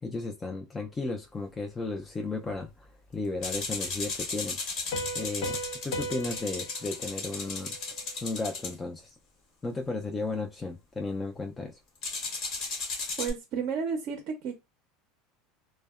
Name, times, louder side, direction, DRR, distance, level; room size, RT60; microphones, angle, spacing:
voice 1, 0.0-4.6 5.2-7.8 8.2-9.1 9.6-11.8, left 3 dB, 20° left, 0.4 m, -34 dB
sound 1, 3.4-8.7 12.0-13.3, left 3 dB, 55° left, 1.0 m, -35 dB
Piano, 4.9-8.3, equal, 80° left, 0.5 m, -38 dB
voice 2, 13.2-14.6, right 6 dB, 50° right, 0.5 m, -32 dB
2.6 x 2.1 x 2.3 m
supercardioid pair, 115°, 0 cm